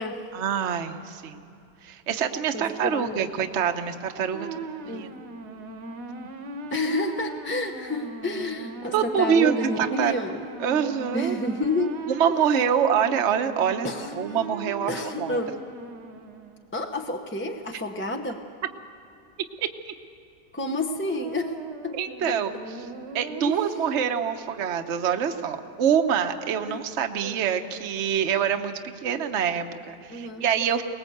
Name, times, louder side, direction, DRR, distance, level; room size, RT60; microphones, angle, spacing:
voice 1, 0.3-1.4 1.8-4.5 4.9-5.1 8.9-10.1 10.6-11.4 12.1-13.9 14.2-14.9 15.2-15.4 19.6-19.9 21.9-22.5 23.1-30.8, right 8 dB, 50° right, 5 dB, 1.1 m, -25 dB
voice 2, 2.5-3.3 4.9-5.1 6.7-10.5 11.1-12.7 13.8-14.4 14.9-15.6 16.7-18.4 20.5-22.0 22.3-22.4 23.4-23.6 26.6-26.8 27.2-27.4 30.1-30.4, left 2 dB, 10° left, 4 dB, 0.6 m, -30 dB
sound 1, 4.3-16.7 20.8-24.0, right 3 dB, 75° right, 1.9 m, -38 dB
23.0 x 19.5 x 7.9 m, 2.7 s
omnidirectional pair, 1.9 m